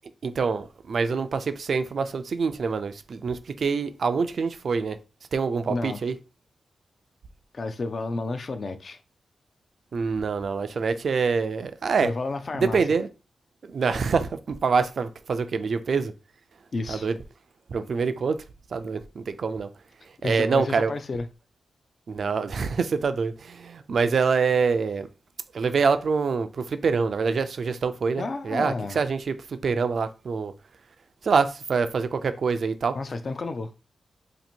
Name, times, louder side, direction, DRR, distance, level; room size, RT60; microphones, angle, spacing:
voice 1, 0.2-5.0 5.3-6.1 9.9-12.1 12.5-13.1 13.7-16.1 16.9-17.1 17.7-18.4 18.7-19.7 20.2-20.9 22.1-25.1 25.5-29.3 29.6-30.5 31.2-33.0, right 5 dB, 55° right, 0.3 m, -25 dB
voice 2, 5.7-6.0 7.5-9.0 12.0-12.8 16.7-17.1 20.2-21.3 28.2-29.0 32.9-33.7, left 3 dB, 40° left, 0.4 m, -31 dB
2.8 x 2.6 x 4.2 m
wide cardioid pair, 165°, 0 cm